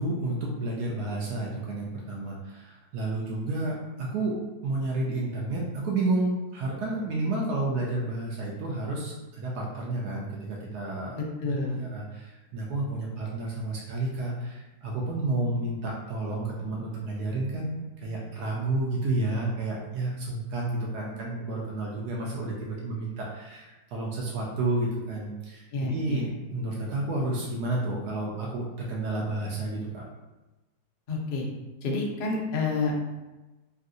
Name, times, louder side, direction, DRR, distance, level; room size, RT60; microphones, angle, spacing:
voice 1, 0.0-11.5 11.8-25.6 25.9-26.2 26.5-30.0, right 2 dB, 80° right, -3 dB, 1.1 m, -31 dB
voice 2, 11.2-11.8 25.7-26.3 31.1-31.4 31.8-32.9, left 3 dB, 90° left, -1 dB, 0.4 m, -29 dB
3.1 x 2.7 x 2.5 m, 1.1 s
omnidirectional pair, 1.7 m